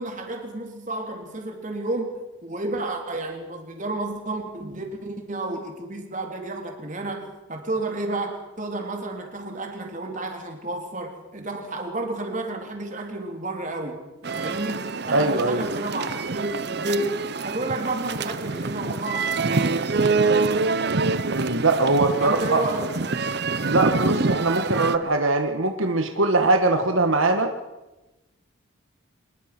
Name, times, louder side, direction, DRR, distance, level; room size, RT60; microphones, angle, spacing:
voice 1, 0.0-2.1 2.4-20.2 22.2-22.9, right 2 dB, 35° right, 3 dB, 3.5 m, -31 dB
sound 1, 14.2-25.0, right 3 dB, 55° right, 0.8 m, -26 dB
voice 2, 15.1-15.7 21.3-22.6 23.6-27.5, right 2 dB, 80° right, 6 dB, 1.6 m, -21 dB
25.0 x 21.0 x 6.1 m, 1.0 s
head